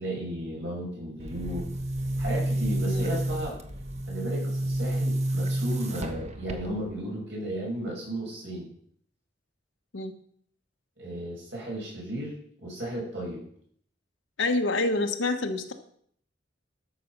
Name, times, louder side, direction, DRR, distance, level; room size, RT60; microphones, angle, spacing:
voice 1, 0.0-1.6 2.2-3.6 4.1-8.7 11.0-13.4, right 1 dB, 65° right, -3 dB, 6.3 m, -34 dB
Boom, 1.2-7.0, right 1 dB, 35° right, 1.1 m, -30 dB
voice 2, 14.4-15.7, left 2 dB, 80° left, 4 dB, 1.2 m, -27 dB
12.5 x 6.8 x 6.0 m, 0.62 s
head